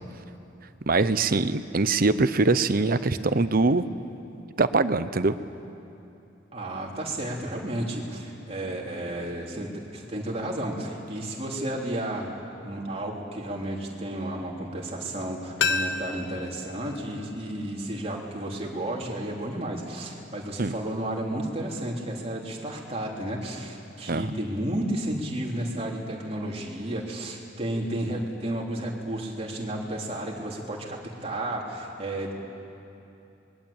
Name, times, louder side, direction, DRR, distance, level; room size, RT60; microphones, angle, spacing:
voice 1, 0.9-3.8 4.6-5.3 20.6-20.7 24.1-24.3, right 3 dB, 50° right, 12 dB, 0.9 m, -23 dB
voice 2, 6.5-12.3 12.6-32.3, right 1 dB, 35° right, -2 dB, 3.7 m, -32 dB
sound 1, 15.6-18.4 18.7-18.8, left 4 dB, 75° left, 1.2 m, -32 dB
29.0 x 21.5 x 8.8 m, 2.9 s
head